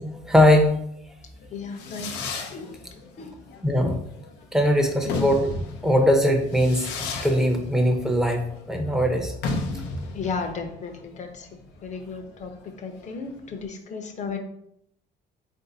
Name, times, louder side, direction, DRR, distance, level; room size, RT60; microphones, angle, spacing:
voice 1, 0.1-0.8 3.6-4.0 4.5-5.5 5.8-6.9 7.2-9.3 9.6-9.9, equal, 5° right, 3 dB, 0.7 m, -20 dB
Fireworks, 1.4-13.6, left 3 dB, 90° left, 0.6 m, -34 dB
voice 2, 1.5-2.1 2.5-2.8 3.2-3.4 5.1-5.2 10.1-11.5 11.8-12.5 12.8-14.4, left 5 dB, 45° left, 5 dB, 0.7 m, -34 dB
3.8 x 2.6 x 3.9 m, 0.72 s
cardioid pair, 110°, 17 cm